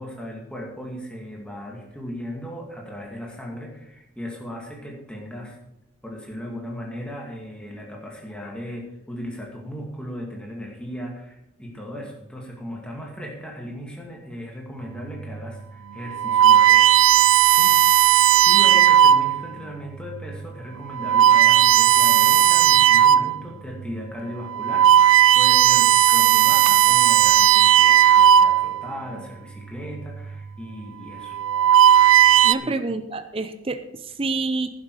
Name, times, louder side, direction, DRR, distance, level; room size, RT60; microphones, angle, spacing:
voice 1, 0.0-5.6 6.0-16.9 17.5-31.4 32.6-32.7, equal, 5° left, 0 dB, 2.3 m, -37 dB
sound 1, 15.2-15.4 16.1-19.5 20.1-20.4 20.9-23.4 23.8-24.0 24.5-28.9 29.9-30.3 31.2-32.5, right 11 dB, 85° right, 0.4 m, -15 dB
voice 2, 32.4-34.7, right 3 dB, 30° right, 9 dB, 0.6 m, -28 dB
11.0 x 11.0 x 4.9 m, 0.83 s
head